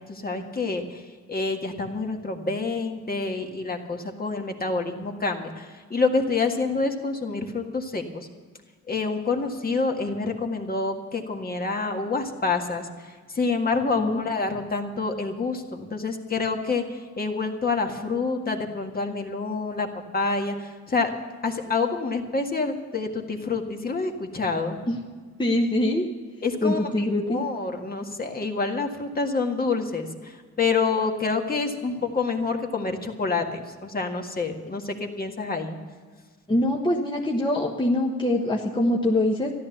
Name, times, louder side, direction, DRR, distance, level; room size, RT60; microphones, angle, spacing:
voice 1, 0.1-8.3 8.9-19.9 20.1-21.1 21.4-24.8 26.4-35.8, left 4 dB, 30° left, 3 dB, 1.8 m, -27 dB
voice 2, 25.4-26.0 26.6-27.4 36.5-39.5, left 1 dB, 15° left, -1 dB, 1.3 m, -23 dB
13.5 x 11.0 x 7.0 m, 1.5 s
cardioid pair, 90°, 30 cm